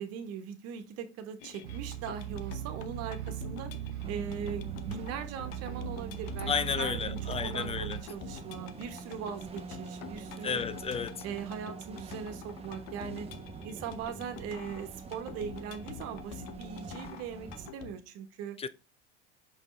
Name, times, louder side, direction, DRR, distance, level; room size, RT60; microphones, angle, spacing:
voice 1, 0.0-3.7 4.1-10.6 11.2-13.3 13.6-18.6, right 7 dB, 45° right, 1.4 m, -40 dB
sound 1, 1.4-17.9, left 11 dB, 55° left, 0.9 m, -48 dB
sound 2, 1.6-8.0, right 12 dB, 80° right, 0.7 m, -39 dB
sound 3, 4.0-17.7, right 4 dB, 20° right, 0.9 m, -45 dB
voice 2, 6.5-8.0 10.4-11.2 18.6-18.7, left 6 dB, 20° left, 0.4 m, -32 dB
6.3 x 5.3 x 3.3 m
hypercardioid pair, 80°, 34 cm